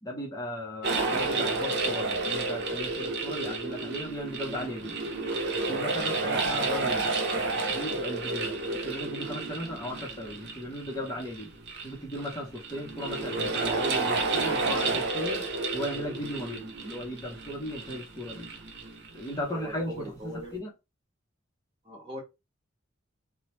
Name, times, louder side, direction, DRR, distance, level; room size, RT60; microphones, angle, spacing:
voice 1, 0.0-5.0 5.7-7.1 7.7-8.6 8.8-11.5 11.8-15.5 15.7-18.5 19.1-20.7, left 1 dB, 20° left, 0.6 m, -36 dB
sound 1, 0.8-19.5, right 3 dB, 60° right, 0.7 m, -31 dB
voice 2, 19.5-20.6 21.8-22.2, equal, 30° right, 1.1 m, -40 dB
2.9 x 2.0 x 3.0 m
head